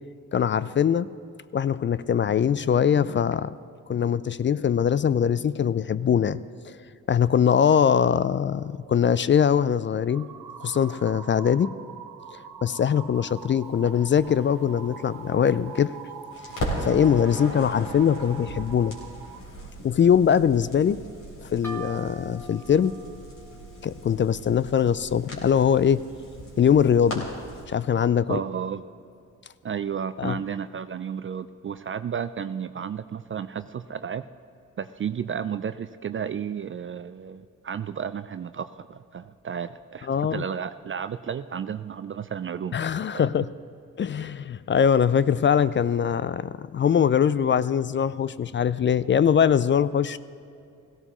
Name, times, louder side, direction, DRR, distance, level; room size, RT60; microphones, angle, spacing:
voice 1, 0.3-1.1 1.5-3.5 3.9-6.4 6.7-6.8 7.1-10.3 10.6-11.7 12.6-15.9 16.6-18.9 19.8-21.0 21.4-22.9 23.8-26.0 26.6-27.3 27.7-28.4 30.2-30.4 40.1-40.4 42.7-43.5 44.0-50.2, left 8 dB, 30° left, 17 dB, 0.4 m, -22 dB
sound 1, 10.1-19.4, right 7 dB, 65° right, 1.0 m, -43 dB
Crackle, 13.8-16.0 16.3-27.6, equal, 60° left, 3.4 m, -38 dB
sound 2, 21.6-25.2, right 2 dB, 5° left, 2.0 m, -43 dB
voice 2, 28.3-28.8 29.6-34.3 34.8-42.7 43.1-43.2, right 7 dB, 35° right, 11 dB, 0.4 m, -32 dB
17.0 x 15.5 x 3.1 m, 2.5 s
supercardioid pair, 50°, 38 cm